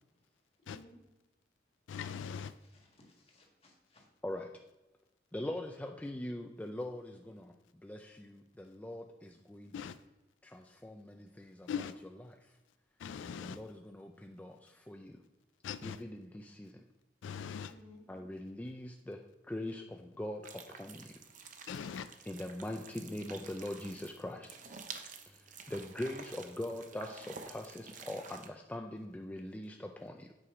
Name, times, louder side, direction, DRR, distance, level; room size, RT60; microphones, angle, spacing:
voice 1, 0.6-0.9 2.4-4.1 17.6-18.1, left 2 dB, 35° left, 1.6 m, -60 dB
voice 2, 1.9-2.5 9.7-10.0 11.7-12.0 13.0-13.6 15.6-16.0 17.2-17.7 21.7-22.1, left 7 dB, 85° left, 0.3 m, -40 dB
voice 3, 5.3-9.9 10.4-11.7 12.3-12.5 13.4-15.2 15.8-16.8 18.1-19.2 19.5-21.1 22.3-24.5 25.3-30.3, left 1 dB, 10° left, 0.4 m, -42 dB
sound 1, 20.4-28.5, right 5 dB, 45° right, 0.7 m, -50 dB
8.6 x 4.8 x 4.9 m
head